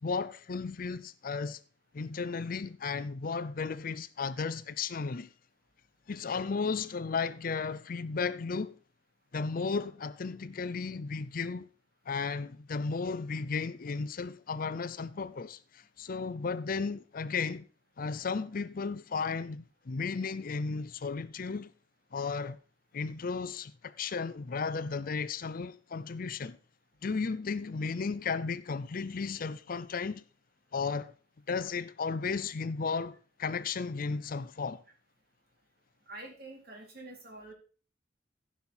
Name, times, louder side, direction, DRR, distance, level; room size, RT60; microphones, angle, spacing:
voice 1, 0.0-1.6 1.9-5.3 6.1-8.8 9.3-11.7 12.1-17.7 18.0-21.7 22.1-22.6 22.9-26.6 27.0-30.2 30.7-31.1 31.5-34.8, left 4 dB, 50° left, 0.5 m, -34 dB
voice 2, 36.1-37.5, right 2 dB, 55° right, 3.7 m, -46 dB
15.5 x 5.7 x 4.3 m
head